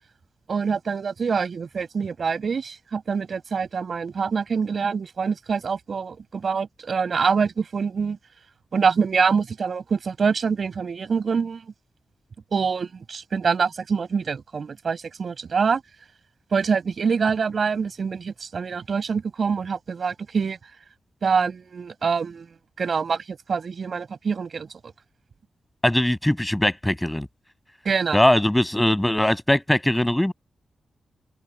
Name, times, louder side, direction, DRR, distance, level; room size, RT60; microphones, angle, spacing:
voice 1, 0.5-8.2 8.7-11.6 12.5-15.8 16.5-20.6 21.2-22.5 22.8-24.9 27.8-28.2, right 5 dB, 60° right, 6.7 m, -25 dB
voice 2, 25.8-27.3 28.1-30.3, left 1 dB, 10° left, 7.5 m, -20 dB
cardioid pair, 75°, 0 cm